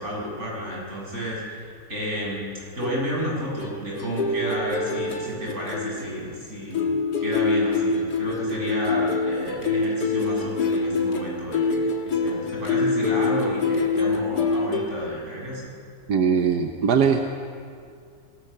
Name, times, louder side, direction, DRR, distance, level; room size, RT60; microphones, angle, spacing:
voice 1, 0.0-1.6 1.9-15.7, equal, 45° right, -4 dB, 7.7 m, -32 dB
sound 1, 2.8-6.5 6.7-14.9, left 3 dB, 90° left, 2.4 m, -25 dB
voice 2, 16.1-17.2, right 6 dB, 90° right, 5 dB, 1.6 m, -20 dB
26.0 x 18.0 x 6.8 m, 2.3 s
omnidirectional pair, 1.7 m